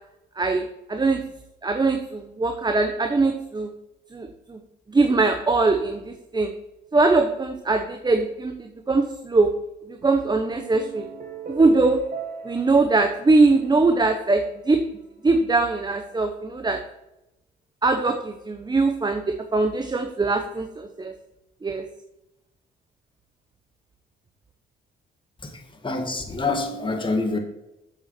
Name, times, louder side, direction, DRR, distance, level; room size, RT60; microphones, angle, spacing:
voice 1, 0.4-1.2 1.6-3.7 4.1-4.6 4.9-6.5 6.9-9.5 9.9-11.1 11.5-12.0 12.4-14.8 15.2-16.8 17.8-21.1 21.6-21.8, right 3 dB, 20° right, 6 dB, 0.9 m, -22 dB
sound 1, 10.0-14.6, right 6 dB, 45° right, 1.6 m, -39 dB
voice 2, 25.4-27.4, left 3 dB, 25° left, 4 dB, 2.2 m, -27 dB
8.1 x 7.1 x 6.0 m, 0.91 s
cardioid pair, 90°, 20 cm